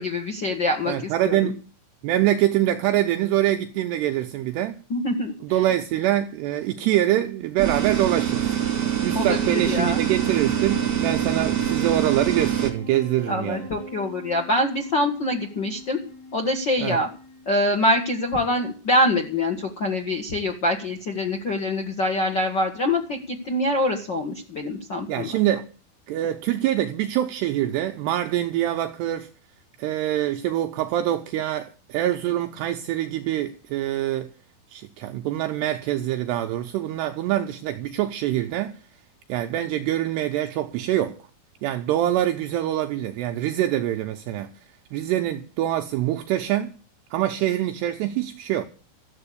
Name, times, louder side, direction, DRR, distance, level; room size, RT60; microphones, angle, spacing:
voice 1, 0.0-1.5 4.9-5.3 9.0-9.4 9.6-10.0 13.3-16.0 16.3-17.1 17.4-25.3, left 1 dB, 85° left, 1.0 m, -24 dB
voice 2, 0.9-1.7 2.0-4.8 5.4-8.5 9.0-13.7 16.8-17.0 25.1-25.7 26.1-29.3 29.8-34.3 34.7-38.7 39.3-41.2 41.6-44.5 44.9-46.8 47.1-48.7, right 13 dB, 75° right, 2.8 m, -24 dB
sound 1, 7.6-12.7, right 10 dB, 40° right, 3.7 m, -24 dB
Wind instrument woodwind instrument, 9.1-18.6, left 2 dB, 60° left, 7.5 m, -43 dB
14.0 x 8.0 x 8.4 m
omnidirectional pair, 5.2 m